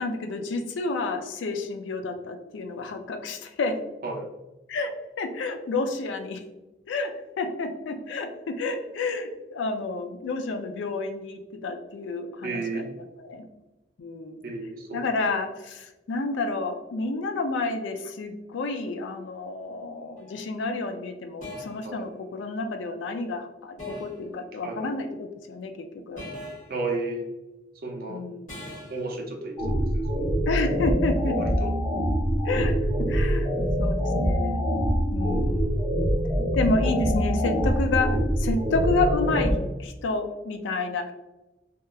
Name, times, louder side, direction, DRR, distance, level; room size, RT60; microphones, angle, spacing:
voice 1, 0.0-3.8 4.7-4.9 5.2-6.4 6.9-13.4 14.0-14.4 14.9-26.3 28.1-28.5 30.5-31.4 32.5-33.5 33.8-34.7 35.1-35.9 36.5-41.1, left 3 dB, 85° left, 6 dB, 0.4 m, -30 dB
voice 2, 12.4-12.9 14.4-15.1 21.8-22.0 24.6-24.9 26.7-27.2 27.8-28.2 28.9-30.0 31.4-31.7, right 3 dB, 50° right, 1 dB, 0.5 m, -32 dB
sound 1, 20.2-20.4 21.4-21.9 23.8-24.3 26.2-26.8 28.5-29.1, left 1 dB, 40° left, 1.4 m, -40 dB
sound 2, 29.6-39.6, equal, 10° left, 0.6 m, -24 dB
2.8 x 2.3 x 2.3 m, 1.0 s
head